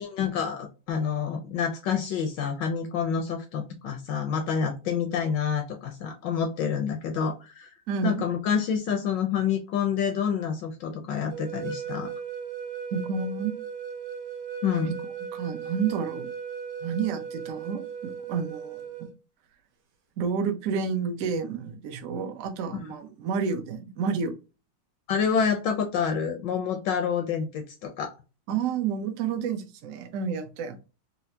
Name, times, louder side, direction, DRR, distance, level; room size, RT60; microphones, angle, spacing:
voice 1, 0.0-7.7 8.0-12.1 14.6-14.9 25.1-28.2, left 7 dB, 75° left, 5 dB, 1.1 m, -28 dB
voice 2, 7.9-8.2 12.9-13.5 15.3-16.3 16.8-19.1 20.2-24.4 28.5-30.8, right 6 dB, 90° right, 5 dB, 0.7 m, -30 dB
sound 1, 11.3-19.1, right 7 dB, 65° right, 1.4 m, -37 dB
4.3 x 2.0 x 2.6 m, 0.30 s
omnidirectional pair, 2.3 m